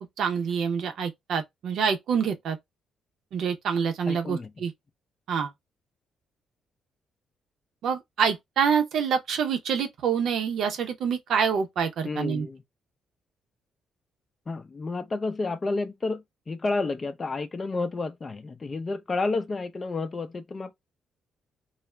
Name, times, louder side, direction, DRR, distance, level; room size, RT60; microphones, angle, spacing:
voice 1, 0.2-2.6 3.3-4.7 5.3-5.5 7.8-12.5, right 6 dB, 70° right, 0.7 m, -26 dB
voice 2, 4.1-4.5 12.0-12.6 14.5-20.7, left 3 dB, 35° left, 0.5 m, -30 dB
2.4 x 2.0 x 3.1 m
cardioid pair, 85°, 0 cm